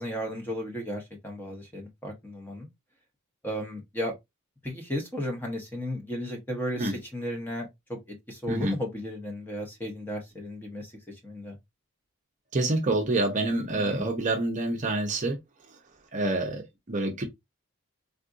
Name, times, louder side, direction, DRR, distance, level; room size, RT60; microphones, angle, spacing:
voice 1, 0.0-2.7 3.4-4.1 4.6-10.9 11.2-11.6 13.7-14.1, equal, 10° left, 0.7 m, -34 dB
voice 2, 12.5-15.4 16.1-17.2, right 2 dB, 35° right, 0.6 m, -27 dB
3.6 x 2.5 x 2.4 m
head